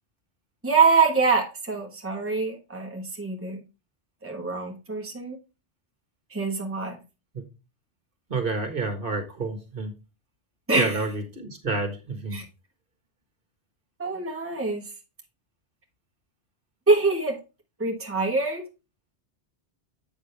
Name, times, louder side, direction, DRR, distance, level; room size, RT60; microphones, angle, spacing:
voice 1, 0.6-3.6 4.2-5.4 6.3-7.0 10.7-11.0 12.3-12.4 14.0-14.8 16.9-17.4 17.8-18.7, right 4 dB, 10° right, 1.3 m, -24 dB
voice 2, 8.3-9.9 10.7-12.4, right 3 dB, 55° right, 1.7 m, -29 dB
7.9 x 6.5 x 3.4 m
omnidirectional pair, 1.1 m